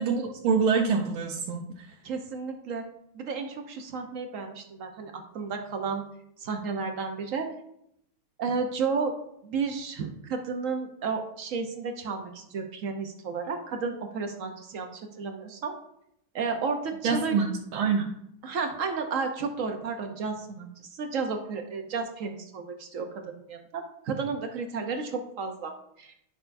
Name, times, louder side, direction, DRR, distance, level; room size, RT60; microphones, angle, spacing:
voice 1, 0.0-1.9 17.0-18.1, right 5 dB, 85° right, -1 dB, 1.6 m, -26 dB
voice 2, 2.0-2.8 3.1-6.1 6.4-7.5 8.4-9.1 9.4-15.8 16.3-17.4 18.4-25.7 26.0-26.2, right 5 dB, 65° right, 4 dB, 0.8 m, -32 dB
10.0 x 6.4 x 2.6 m, 0.74 s
omnidirectional pair, 2.2 m